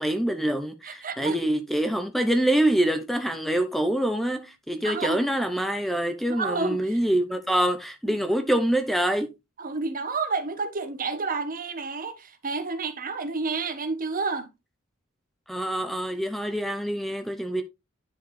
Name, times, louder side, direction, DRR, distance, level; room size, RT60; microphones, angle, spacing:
voice 1, 0.0-9.3 15.5-17.6, right 1 dB, ahead, 0.6 m, -25 dB
voice 2, 0.8-1.5 4.8-5.3 6.3-7.0 8.0-8.2 9.6-14.5, right 4 dB, 45° right, 1.2 m, -30 dB
10.5 x 4.6 x 3.2 m
head